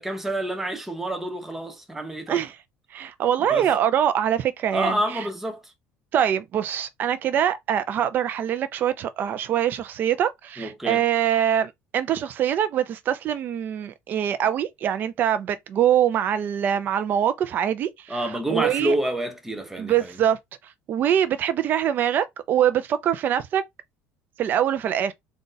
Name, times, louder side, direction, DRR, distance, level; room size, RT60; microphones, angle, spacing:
voice 1, 0.0-2.4 3.5-3.7 4.7-5.7 10.6-11.0 18.1-20.1, right 1 dB, 5° right, 0.8 m, -28 dB
voice 2, 2.3-2.6 2.9-5.3 6.1-18.9 19.8-20.4 20.6-23.6 24.4-25.1, right 10 dB, 40° right, 0.5 m, -24 dB
4.0 x 2.4 x 4.0 m
cardioid pair, 155°, 5 cm